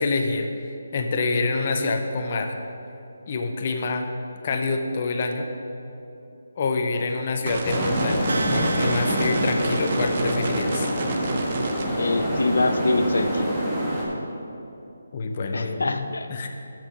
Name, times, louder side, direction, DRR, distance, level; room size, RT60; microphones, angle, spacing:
voice 1, 0.0-2.5 3.3-4.1 4.4-5.5 6.6-10.9 15.1-16.5, left 3 dB, 30° left, 4 dB, 0.5 m, -26 dB
sound 1, 7.5-11.8, right 3 dB, 30° right, 0.7 m, -30 dB
sound 2, 7.6-14.0, equal, ahead, 1.2 m, -26 dB
sound 3, 8.3-11.2, right 3 dB, 80° right, 0.6 m, -35 dB
voice 2, 12.0-13.5 15.5-16.5, left 2 dB, 90° left, 7 dB, 0.7 m, -25 dB
13.5 x 4.5 x 5.3 m, 2.9 s
hypercardioid pair, 175°, 0 cm